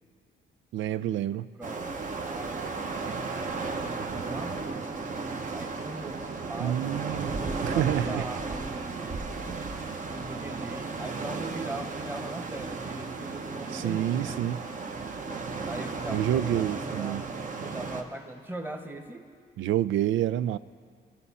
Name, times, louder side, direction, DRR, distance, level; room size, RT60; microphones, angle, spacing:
voice 1, 0.7-1.5 6.6-7.3 7.6-8.3 13.7-14.6 16.1-17.2 19.6-20.6, right 12 dB, 75° right, 16 dB, 0.4 m, -28 dB
voice 2, 1.5-5.0 5.5-9.3 10.1-14.4 15.6-17.3 17.6-19.3, right 1 dB, 10° right, 5 dB, 1.2 m, -41 dB
sound 1, 1.6-18.0, right 4 dB, 40° right, 1.0 m, -34 dB
21.0 x 7.1 x 4.2 m, 2.1 s
cardioid pair, 90°, 20 cm